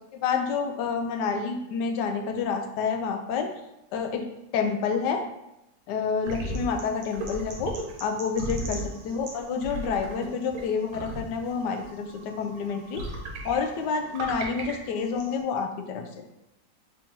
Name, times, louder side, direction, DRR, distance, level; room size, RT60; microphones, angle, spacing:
voice 1, 0.1-3.5 3.9-4.3 4.5-5.2 5.9-7.7 8.0-13.0 13.4-16.1, left 5 dB, 85° left, 5 dB, 1.2 m, -28 dB
sound 1, 6.2-15.4, right 1 dB, 75° right, 1.3 m, -37 dB
4.0 x 2.7 x 3.6 m, 0.89 s
omnidirectional pair, 1.8 m